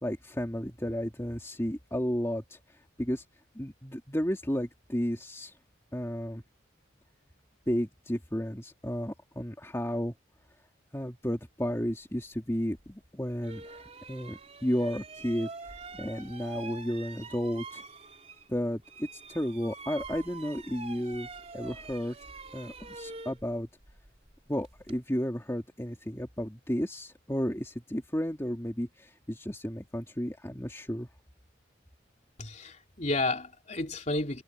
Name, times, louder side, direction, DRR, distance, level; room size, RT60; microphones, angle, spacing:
voice 1, 0.0-3.2 3.5-5.5 5.9-6.4 7.7-10.1 10.9-15.5 15.9-17.8 18.5-22.2 22.5-23.7 24.5-31.1, equal, 15° left, 2.4 m, -33 dB
sound 1, 12.8-12.9 13.4-18.6 18.8-25.0, right 3 dB, 35° right, 3.9 m, -45 dB
voice 2, 32.4-34.4, left 2 dB, 35° left, 3.2 m, -31 dB
head